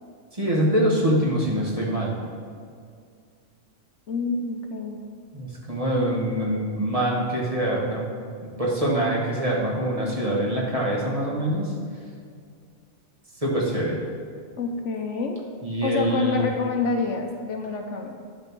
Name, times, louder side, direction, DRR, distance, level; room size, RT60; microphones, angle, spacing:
voice 1, 0.3-2.1 5.3-8.1 8.4-11.7 13.4-14.0 15.6-16.4, right 1 dB, 25° right, -4 dB, 1.5 m, -24 dB
voice 2, 4.1-5.0 14.6-15.4 15.8-18.2, left 4 dB, 65° left, 3 dB, 1.0 m, -27 dB
10.5 x 4.3 x 6.1 m, 2.2 s
omnidirectional pair, 1.4 m